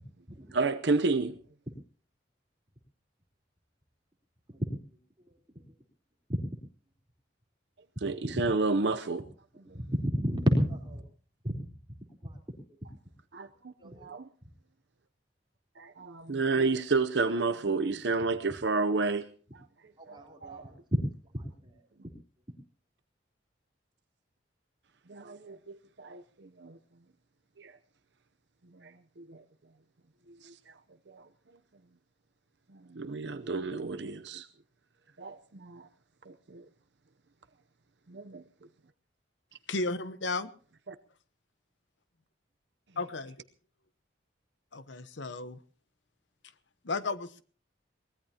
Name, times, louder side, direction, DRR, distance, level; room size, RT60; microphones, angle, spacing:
voice 1, 0.5-1.3 8.0-9.2 13.3-14.3 15.8-19.3 20.1-20.6 25.1-26.8 27.6-27.7 28.8-29.4 30.4-30.6 31.1-31.2 32.9-34.5 35.2-35.9 36.3-36.6 38.1-38.4 40.9-41.0, right 3 dB, 65° right, 0.8 m, -31 dB
voice 2, 4.5-5.3 6.3-6.4 9.7-11.0 11.4-11.7 12.2-12.4 12.7-12.8 13.8-14.1 20.0-21.1 21.3-21.8, equal, 25° right, 3.8 m, -31 dB
voice 3, 39.7-40.5 43.0-43.4 44.7-45.6 46.8-47.4, left 3 dB, 75° left, 1.0 m, -34 dB
23.0 x 19.5 x 2.9 m
head